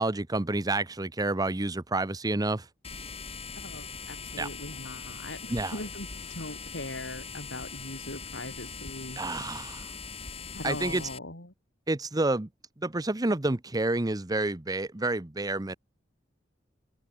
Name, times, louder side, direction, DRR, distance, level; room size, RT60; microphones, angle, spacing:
voice 1, 0.0-2.6 4.4-4.5 5.5-5.7 9.2-9.8 10.6-11.0 11.9-12.5 12.8-15.8, right 2 dB, 20° right, 0.8 m, -29 dB
sound 1, 2.8-11.2, left 5 dB, 35° left, 4.5 m, -41 dB
voice 2, 3.5-9.2 10.5-11.5, left 2 dB, 85° left, 4.6 m, -40 dB
open air
head